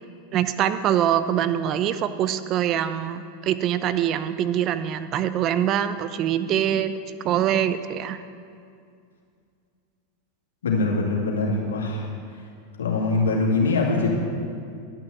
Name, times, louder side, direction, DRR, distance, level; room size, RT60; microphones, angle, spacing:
voice 1, 0.3-6.9 7.2-8.2, right 10 dB, 45° right, 12 dB, 0.6 m, -24 dB
voice 2, 10.6-12.1 12.8-14.1, left 3 dB, 85° left, -2 dB, 2.3 m, -23 dB
11.5 x 6.1 x 7.9 m, 2.3 s
hypercardioid pair, 100°, 0 cm